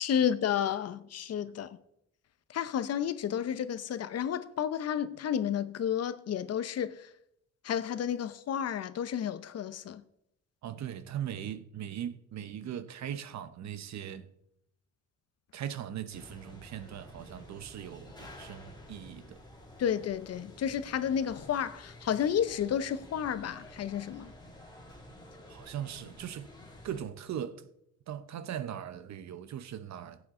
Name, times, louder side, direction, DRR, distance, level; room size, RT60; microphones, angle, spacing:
voice 1, 0.0-1.8 2.5-7.1 7.6-10.0 19.8-24.3, left 9 dB, 55° left, 0.7 m, -31 dB
voice 2, 10.6-14.3 15.5-19.4 25.5-26.6 26.8-27.7 28.1-30.2, right 10 dB, 65° right, 0.9 m, -39 dB
sound 1, 16.1-27.0, left 1 dB, 15° left, 2.4 m, -51 dB
14.5 x 8.4 x 3.7 m
cardioid pair, 90°, 30 cm